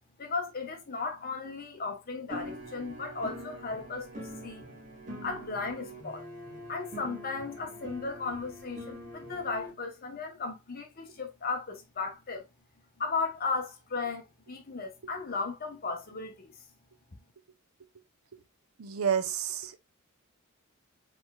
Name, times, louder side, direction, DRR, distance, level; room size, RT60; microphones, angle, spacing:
voice 1, 0.2-4.6 5.2-6.2 6.7-12.4 13.0-16.5, left 4 dB, 45° left, 1.0 m, -35 dB
sound 1, 2.3-9.7, equal, 35° right, 1.9 m, -44 dB
voice 2, 18.8-19.8, right 8 dB, 85° right, 0.6 m, -30 dB
4.6 x 4.1 x 2.3 m
head